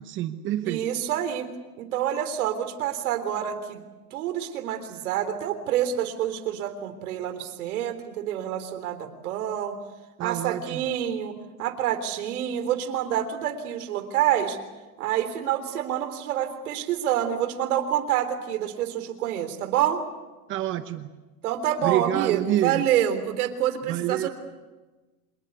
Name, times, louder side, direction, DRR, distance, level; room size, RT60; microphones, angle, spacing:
voice 1, 0.0-0.8 10.2-10.8 20.5-21.1 21.8-22.8 23.9-24.3, right 13 dB, 25° right, 10 dB, 0.9 m, -27 dB
voice 2, 0.7-1.5 1.8-3.8 4.1-9.8 10.2-14.6 15.0-20.0 21.4-24.3, right 10 dB, 70° right, 9 dB, 3.8 m, -27 dB
27.0 x 19.5 x 8.3 m, 1.2 s
supercardioid pair, 150°, 45 cm